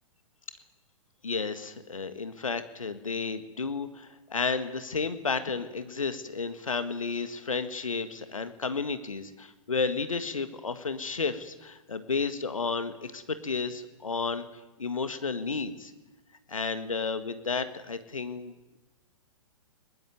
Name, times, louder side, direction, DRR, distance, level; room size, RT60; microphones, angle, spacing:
voice 1, 1.2-15.9 16.5-18.8, left 4 dB, 70° left, 11 dB, 1.6 m, -32 dB
22.5 x 19.5 x 9.3 m, 1.1 s
figure-of-eight pair, 115°, 17 cm